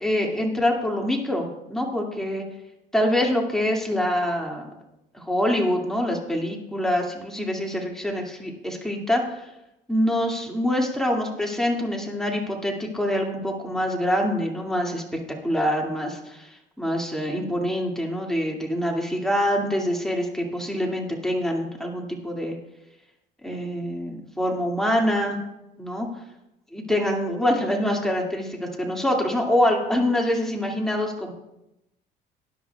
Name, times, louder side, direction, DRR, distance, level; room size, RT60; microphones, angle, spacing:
voice 1, 0.0-2.4 2.9-4.7 5.1-9.5 9.9-16.5 16.8-22.6 23.4-25.4 25.8-26.1 26.7-31.3, left 1 dB, 5° left, -1 dB, 2.3 m, -25 dB
19.5 x 10.5 x 2.4 m, 0.90 s
cardioid pair, 110°, 17 cm